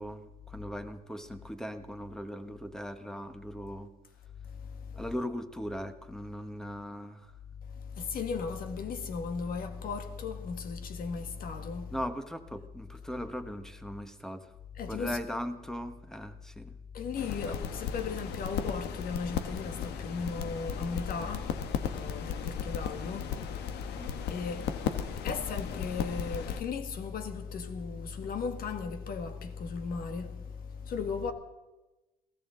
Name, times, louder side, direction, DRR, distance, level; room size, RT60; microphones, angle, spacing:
voice 1, 0.0-3.9 5.0-7.4 11.9-14.5 14.9-16.8 23.8-24.1, equal, 5° left, 1.4 m, -39 dB
voice 2, 4.5-5.0 7.7-11.9 14.8-15.2 16.9-31.3, left 5 dB, 60° left, 2.0 m, -36 dB
sound 1, 17.1-26.6, left 8 dB, 80° left, 1.3 m, -36 dB
22.0 x 17.0 x 3.9 m
cardioid pair, 110°, 17 cm